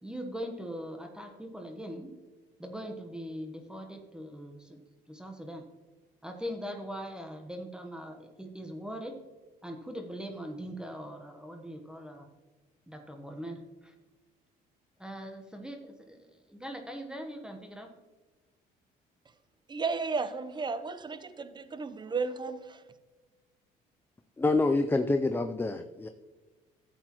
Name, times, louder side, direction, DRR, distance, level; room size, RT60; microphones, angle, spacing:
voice 1, 0.0-2.1 2.6-4.8 5.1-5.7 6.2-9.2 9.6-12.3 12.9-13.9 15.0-17.9, equal, 5° right, 4 dB, 1.1 m, -41 dB
voice 2, 19.7-22.8, right 4 dB, 25° right, 12 dB, 0.7 m, -34 dB
voice 3, 24.4-26.1, left 3 dB, 10° left, 7 dB, 0.5 m, -27 dB
12.5 x 8.1 x 3.0 m, 1.3 s
cardioid pair, 90°, 17 cm